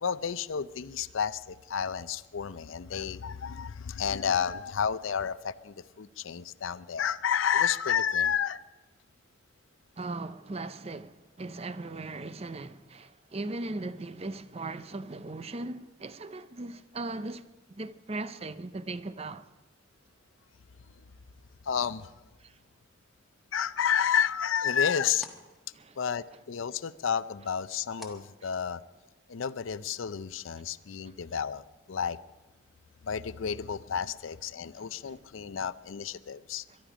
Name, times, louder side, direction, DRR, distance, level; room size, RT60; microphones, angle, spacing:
voice 1, 0.0-8.6 21.6-22.1 23.5-25.3 26.0-28.8 29.3-32.2 33.0-36.6, left 7 dB, 80° left, 0.5 m, -31 dB
voice 2, 10.0-17.4 17.7-19.5 22.4-22.5 25.7-26.0 36.7-36.8, right 2 dB, 30° right, 0.6 m, -38 dB
sound 1, 23.8-29.2, left 1 dB, ahead, 1.3 m, -55 dB
22.5 x 12.0 x 5.0 m
head